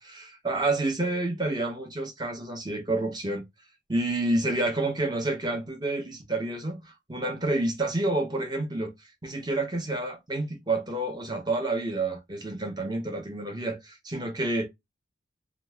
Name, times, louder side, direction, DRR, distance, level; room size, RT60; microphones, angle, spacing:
voice 1, 0.0-3.4 3.9-8.9 9.2-14.6, right 2 dB, 20° right, 0.8 m, -29 dB
2.9 x 2.0 x 3.3 m
head